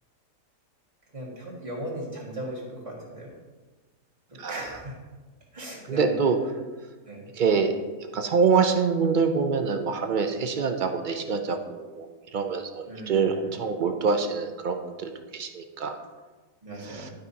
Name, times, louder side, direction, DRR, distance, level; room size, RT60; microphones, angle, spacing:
voice 1, 1.1-3.3 4.3-5.0 5.5-6.5 7.1-7.3 12.9-13.5 16.6-17.1, right 1 dB, 25° right, -5 dB, 1.9 m, -37 dB
voice 2, 5.9-6.4 7.4-7.7 8.1-12.1 12.3-16.0, right 5 dB, 60° right, 6 dB, 0.5 m, -25 dB
12.0 x 5.0 x 2.8 m, 1.3 s
omnidirectional pair, 1.4 m